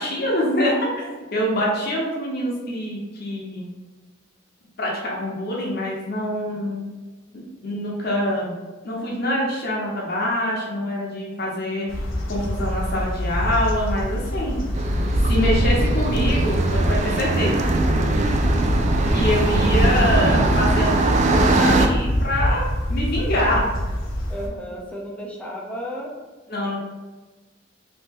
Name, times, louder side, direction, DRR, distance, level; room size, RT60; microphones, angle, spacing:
voice 1, 0.0-3.6 4.8-6.8 7.3-8.5 8.8-11.9 12.3-14.6 15.2-17.7 19.1-22.6 22.9-23.7 26.5-26.8, equal, 50° left, -3 dB, 1.0 m, -25 dB
sound 1, 11.9-24.5, equal, 80° left, 0.7 m, -26 dB
sound 2, 14.7-21.9, right 2 dB, 35° right, 0.3 m, -20 dB
voice 2, 24.3-26.1, equal, 5° left, -4 dB, 0.6 m, -33 dB
3.0 x 2.7 x 3.6 m, 1.2 s
head